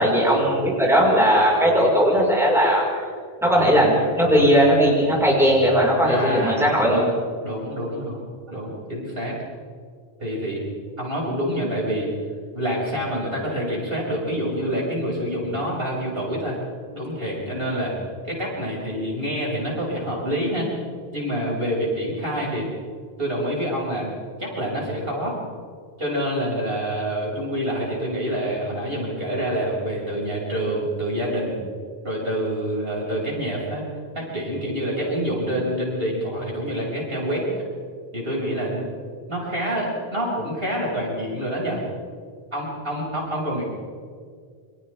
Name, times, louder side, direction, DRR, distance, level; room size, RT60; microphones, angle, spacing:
voice 1, 0.0-2.8 3.4-7.0, equal, ahead, -4 dB, 5.6 m, -18 dB
voice 2, 6.0-7.1 7.4-8.2 8.5-9.4 10.2-10.6 11.0-12.1 12.5-16.6 16.9-17.9 18.2-20.7 21.1-22.7 23.2-24.1 24.4-25.4 26.0-31.6 32.0-33.8 34.1-37.5 38.1-38.8 39.3-41.9 42.5-43.6, equal, 65° right, -5 dB, 7.5 m, -27 dB
29.5 x 26.5 x 3.7 m, 2.1 s
omnidirectional pair, 1.1 m